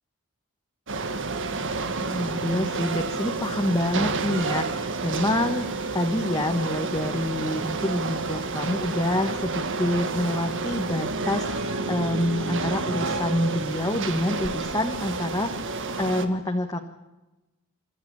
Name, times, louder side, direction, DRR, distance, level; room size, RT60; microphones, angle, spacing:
sound 1, 0.9-16.3, right 3 dB, 60° right, 1.7 m, -30 dB
voice 1, 2.0-5.6 5.9-15.7 16.0-16.8, left 1 dB, 15° left, 3 dB, 1.4 m, -27 dB
25.5 x 13.5 x 8.6 m, 1.0 s
head